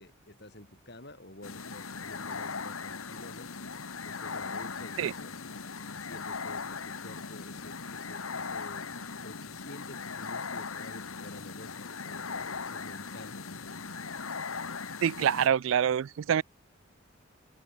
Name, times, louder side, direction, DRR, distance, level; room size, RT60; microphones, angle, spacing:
voice 1, 0.0-3.5 4.0-8.9 9.2-14.1, left 1 dB, 50° left, 4.8 m, -50 dB
sound 1, 1.4-15.5, left 5 dB, 85° left, 1.6 m, -39 dB
voice 2, 15.0-16.4, right 8 dB, 75° right, 0.3 m, -26 dB
head